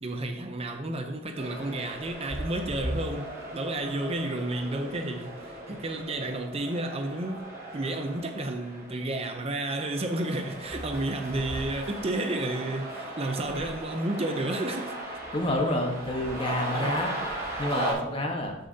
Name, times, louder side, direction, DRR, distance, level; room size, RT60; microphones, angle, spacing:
voice 1, 0.0-15.0 16.7-17.0, right 2 dB, 30° right, 0.6 m, -32 dB
sound 1, 1.4-17.9, right 2 dB, 15° right, 3.0 m, -38 dB
voice 2, 15.3-17.1 17.6-18.6, left 1 dB, 30° left, 1.3 m, -28 dB
12.5 x 6.5 x 2.8 m
head